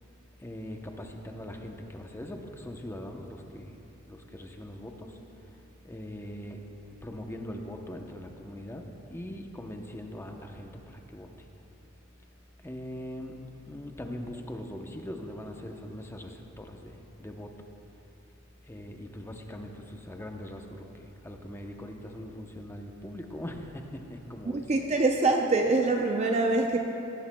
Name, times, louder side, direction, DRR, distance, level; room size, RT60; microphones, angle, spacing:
voice 1, 0.4-3.7 4.1-5.2 5.8-6.6 7.0-8.8 9.1-11.3 12.6-17.5 18.7-24.7, left 1 dB, 10° left, 3 dB, 0.7 m, -41 dB
voice 2, 24.5-26.8, right 3 dB, 30° right, 2 dB, 0.6 m, -24 dB
17.5 x 14.5 x 2.2 m, 2.9 s
head